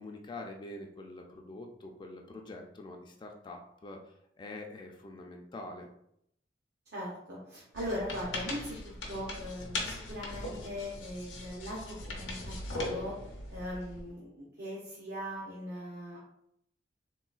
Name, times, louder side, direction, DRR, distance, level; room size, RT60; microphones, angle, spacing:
voice 1, 0.0-5.9, left 2 dB, 25° left, 2 dB, 0.3 m, -45 dB
voice 2, 6.9-13.1 13.5-16.2, equal, 60° right, -4 dB, 0.7 m, -40 dB
sound 1, 7.8-14.1, left 2 dB, 80° left, 0.7 m, -40 dB
3.8 x 2.2 x 2.3 m, 0.73 s
head